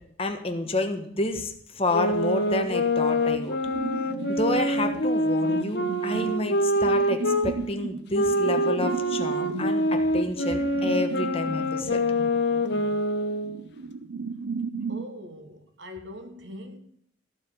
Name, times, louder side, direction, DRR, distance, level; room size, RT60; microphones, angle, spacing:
voice 1, 0.2-3.6 4.3-12.0, left 2 dB, 30° left, 1.3 m, -29 dB
sound 1, 1.9-7.5 8.1-13.6, equal, 60° left, 1.0 m, -25 dB
sound 2, 3.7-15.1, right 4 dB, 90° right, 0.8 m, -36 dB
voice 2, 14.9-16.8, left 1 dB, 65° right, 1.5 m, -42 dB
14.5 x 4.9 x 8.7 m
head